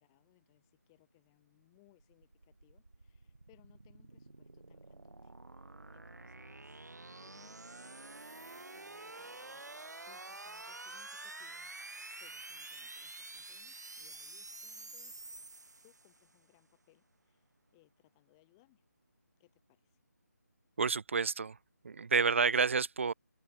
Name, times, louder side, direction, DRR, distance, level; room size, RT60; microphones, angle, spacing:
voice 1, 0.0-9.7 10.1-15.2 15.8-18.8 19.4-20.0, left 23 dB, 15° left, 1.7 m, -69 dB
sound 1, 1.9-16.3, right 2 dB, 75° right, 1.3 m, -49 dB
voice 2, 20.8-21.6 21.8-23.1, right 5 dB, 45° right, 0.6 m, -29 dB
open air
figure-of-eight pair, 155°, 9 cm